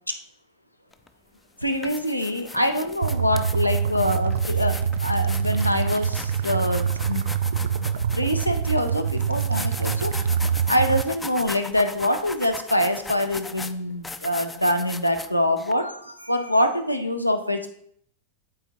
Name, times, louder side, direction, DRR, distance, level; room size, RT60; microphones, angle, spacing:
sound 1, 0.9-1.1 1.6-15.7, left 3 dB, 10° left, 0.4 m, -38 dB
voice 1, 1.6-7.2 8.1-10.1 10.7-17.7, left 1 dB, 90° left, 7 dB, 0.6 m, -25 dB
sound 2, 3.0-11.0, right 7 dB, 60° right, 0.3 m, -25 dB
11.0 x 4.3 x 2.7 m, 0.67 s
figure-of-eight pair, 90°, 0 cm